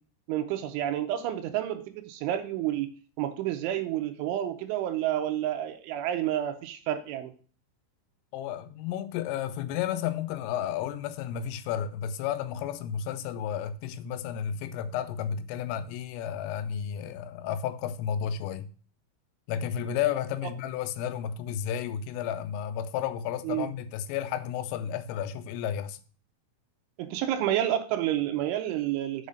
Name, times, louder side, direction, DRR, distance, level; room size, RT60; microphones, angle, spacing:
voice 1, 0.3-2.9 3.2-7.3 23.4-23.7 27.0-29.3, right 12 dB, 80° right, 3.1 m, -29 dB
voice 2, 8.3-18.7 19.5-26.0, left 9 dB, 90° left, 3.3 m, -32 dB
7.3 x 5.4 x 6.4 m
omnidirectional pair, 5.7 m